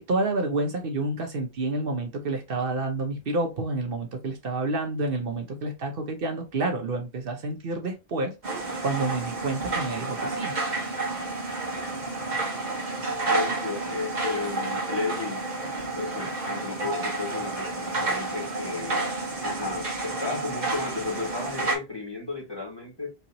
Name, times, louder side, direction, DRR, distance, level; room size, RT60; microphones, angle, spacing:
voice 1, 0.0-8.3 8.8-10.6, right 2 dB, 65° right, 1.0 m, -29 dB
sound 1, 8.4-21.7, right 3 dB, 45° right, 1.3 m, -30 dB
voice 2, 13.2-15.5 15.8-19.2 19.4-23.1, left 4 dB, 25° left, 1.6 m, -33 dB
4.4 x 2.9 x 2.7 m
omnidirectional pair, 1.0 m